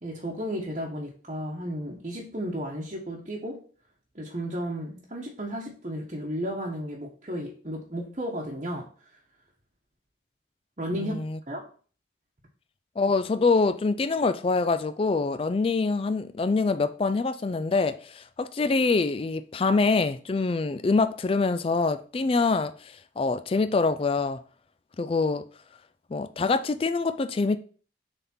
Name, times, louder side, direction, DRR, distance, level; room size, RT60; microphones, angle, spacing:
voice 1, 0.0-3.6 4.1-8.9 10.8-11.2 11.5-11.6, equal, 40° right, 1.1 m, -33 dB
voice 2, 10.9-11.4 13.0-24.4 25.0-25.4 26.1-27.6, left 3 dB, 30° left, 0.3 m, -25 dB
7.2 x 3.6 x 4.3 m
head